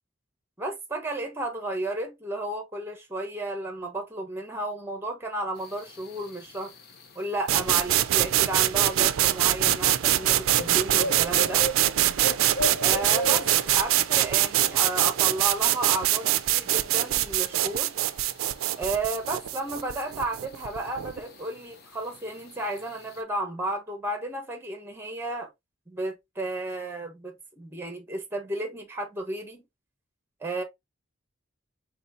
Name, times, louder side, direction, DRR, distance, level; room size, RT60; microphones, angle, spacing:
voice 1, 0.6-6.7 7.1-11.6 12.8-17.9 18.8-25.5 25.9-29.6 30.4-30.6, right 2 dB, 10° right, 1.1 m, -33 dB
sound 1, 5.6-23.2, equal, 50° left, 0.8 m, -40 dB
sound 2, 7.5-21.2, right 13 dB, 90° right, 0.4 m, -24 dB
4.2 x 3.5 x 2.6 m
head